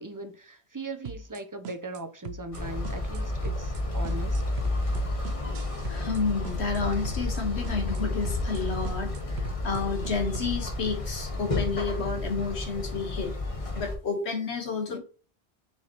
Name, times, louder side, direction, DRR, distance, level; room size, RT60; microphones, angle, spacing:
voice 1, 0.0-4.4 14.9-15.0, right 2 dB, 20° right, 0.6 m, -39 dB
sound 1, 1.0-1.4 1.6-2.0 2.2-2.6 2.8-3.2 3.4-3.8 4.0-6.2 6.4-6.8 7.0-7.4 7.6-8.0 8.2-8.6 8.8-10.5, right 4 dB, 75° right, 0.9 m, -40 dB
sound 2, 2.5-13.9, left 2 dB, 30° left, 1.3 m, -31 dB
voice 2, 5.9-13.3 13.7-15.0, left 4 dB, 80° left, 1.7 m, -30 dB
6.6 x 4.9 x 3.0 m
omnidirectional pair, 1.1 m